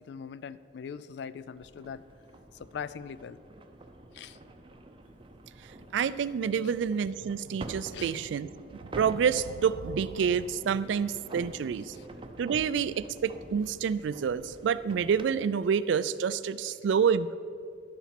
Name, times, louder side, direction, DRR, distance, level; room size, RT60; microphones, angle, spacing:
voice 1, 0.1-2.0 2.5-3.4 4.1-4.4 7.9-8.2 11.9-12.1 16.7-16.8, left 6 dB, 60° left, 16 dB, 0.3 m, -41 dB
sound 1, 1.5-15.3, right 1 dB, 25° right, 0.6 m, -47 dB
voice 2, 5.9-11.9 12.4-17.4, right 7 dB, 70° right, 16 dB, 0.3 m, -28 dB
11.0 x 7.2 x 5.8 m, 2.5 s
head